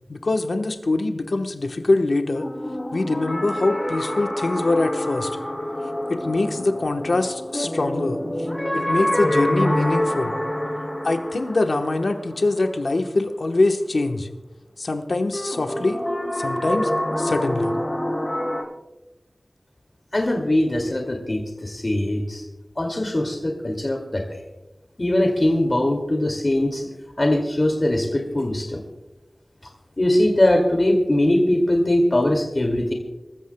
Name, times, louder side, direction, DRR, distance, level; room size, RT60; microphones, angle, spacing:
voice 1, 0.1-2.5 2.9-5.3 6.1-8.2 8.7-10.4 11.0-14.3 14.8-16.0 16.3-16.9 17.2-17.7, left 2 dB, 85° left, 5 dB, 1.1 m, -23 dB
sound 1, 2.4-13.2 15.3-18.6, left 1 dB, 20° left, 5.5 m, -27 dB
voice 2, 20.1-22.4 22.8-24.2 25.0-26.8 27.2-28.8 30.0-32.9, left 1 dB, 45° left, 2 dB, 2.3 m, -21 dB
26.5 x 14.5 x 2.2 m, 1.0 s
wide cardioid pair, 55°, 0 cm